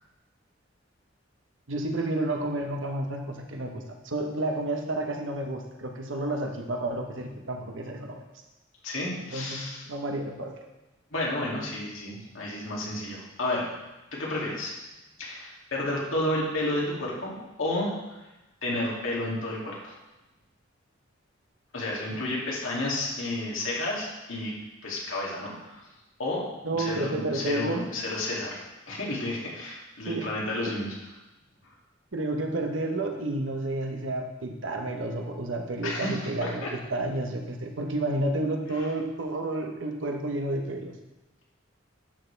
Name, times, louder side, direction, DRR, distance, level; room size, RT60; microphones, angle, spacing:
voice 1, 1.7-8.2 9.3-10.5 22.1-22.2 26.6-27.9 30.1-30.3 32.1-36.7 36.9-40.9, right 2 dB, 70° right, 3 dB, 1.2 m, -31 dB
voice 2, 8.8-9.8 11.1-13.7 14.1-14.7 15.2-17.3 17.6-18.2 18.6-19.9 21.7-24.5 24.8-25.8 26.2-26.5 26.8-28.6 28.9-30.9 35.8-36.7, left 1 dB, 90° left, -4 dB, 2.5 m, -31 dB
11.0 x 6.8 x 3.4 m, 1.0 s
head